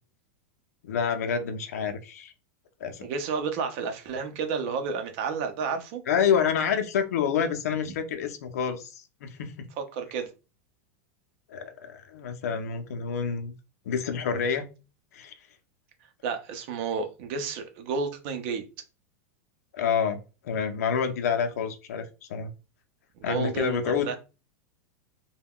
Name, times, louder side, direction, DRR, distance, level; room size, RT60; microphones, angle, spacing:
voice 1, 0.8-2.3 2.8-3.1 6.1-9.7 11.5-13.5 13.9-14.7 15.1-15.3 19.7-20.2 20.4-22.5 23.2-24.2, left 7 dB, 85° left, 0.6 m, -28 dB
voice 2, 3.0-6.0 9.8-10.3 16.2-18.6 23.2-24.2, right 5 dB, 45° right, 0.6 m, -31 dB
2.3 x 2.2 x 3.5 m
supercardioid pair, 160°, 8 cm